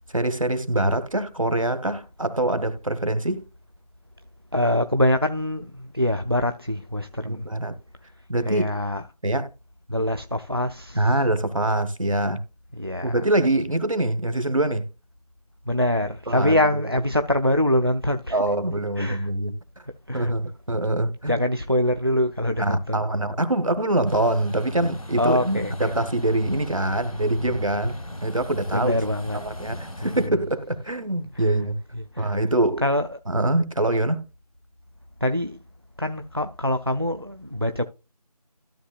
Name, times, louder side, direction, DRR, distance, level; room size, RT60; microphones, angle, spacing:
voice 1, 0.1-3.4 7.2-7.7 8.3-8.7 9.2-9.5 10.9-12.4 13.0-14.9 16.3-16.6 18.3-19.6 20.1-21.4 22.6-29.0 29.3-31.7 32.2-32.8 33.3-34.2, right 1 dB, 55° right, 1.2 m, -24 dB
voice 2, 4.5-7.5 8.5-9.0 9.9-11.2 12.8-13.2 15.7-18.4 19.0-19.3 20.1-20.5 21.3-23.0 25.2-25.9 28.7-29.4 29.6-30.4 31.3-31.5 31.9-32.3 32.8-33.2 35.2-35.6 36.0-37.8, left 1 dB, 40° right, 0.4 m, -24 dB
Truck, 24.1-30.3, left 1 dB, 60° left, 1.1 m, -36 dB
12.5 x 6.9 x 2.4 m
figure-of-eight pair, 175°, 20 cm